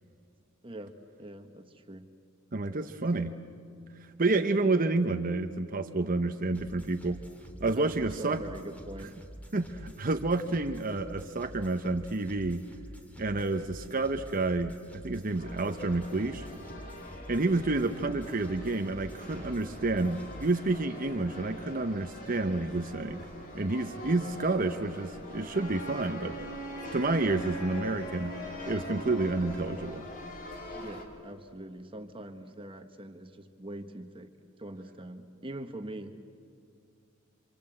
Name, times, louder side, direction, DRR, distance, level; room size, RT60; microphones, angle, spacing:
voice 1, 0.6-2.1 2.9-3.4 7.7-9.2 24.0-24.3 30.7-34.3 34.6-36.2, right 1 dB, 25° right, 7 dB, 1.4 m, -43 dB
voice 2, 2.5-3.4 4.2-7.2 7.6-8.4 9.5-12.7 13.2-16.5 17.3-23.3 23.5-26.4 26.9-28.4 28.6-30.1, right 2 dB, 40° right, 7 dB, 1.0 m, -29 dB
sound 1, 6.5-20.6, equal, 5° left, 2.1 m, -48 dB
sound 2, 15.4-31.0, left 1 dB, 40° left, 3.6 m, -44 dB
Wind instrument woodwind instrument, 25.5-29.9, equal, 65° left, 6.0 m, -42 dB
27.5 x 26.5 x 7.9 m, 2.3 s
head